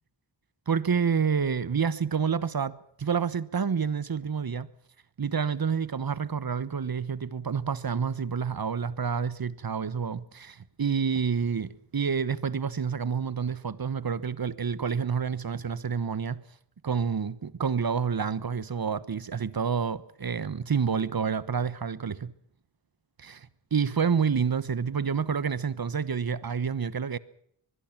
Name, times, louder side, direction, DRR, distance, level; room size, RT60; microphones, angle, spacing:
voice 1, 0.7-4.7 5.2-16.4 16.8-22.3 23.2-27.2, right 6 dB, 55° right, 1.1 m, -28 dB
24.0 x 21.5 x 6.0 m
wide cardioid pair, 80°, 43 cm